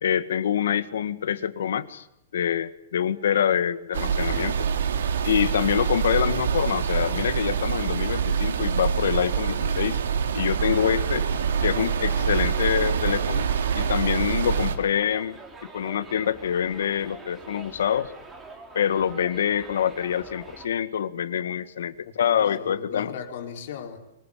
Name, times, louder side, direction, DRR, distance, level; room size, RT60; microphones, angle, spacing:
voice 1, 0.0-2.0 2.3-4.7 5.2-10.0 10.3-11.2 11.6-13.5 13.8-15.4 15.7-18.1 18.7-23.1, left 9 dB, 80° left, 13 dB, 1.8 m, -25 dB
sound 1, 3.9-14.8, right 7 dB, 85° right, 3.1 m, -25 dB
Subway metro underground, 10.3-20.7, right 3 dB, 10° right, 3.2 m, -45 dB
voice 2, 22.1-24.0, left 8 dB, 50° left, 4 dB, 4.6 m, -37 dB
25.0 x 21.5 x 8.6 m, 0.82 s
hypercardioid pair, 175°, 0 cm